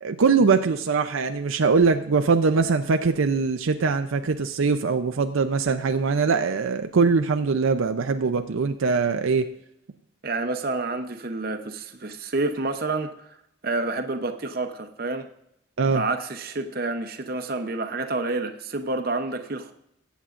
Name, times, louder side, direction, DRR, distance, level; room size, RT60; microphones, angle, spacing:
voice 1, 0.0-9.5 15.8-16.0, right 4 dB, 75° right, 7 dB, 0.5 m, -22 dB
voice 2, 10.2-13.3 13.6-15.3 15.9-19.7, right 3 dB, 45° right, 7 dB, 0.8 m, -29 dB
21.0 x 8.2 x 2.5 m, 0.78 s
head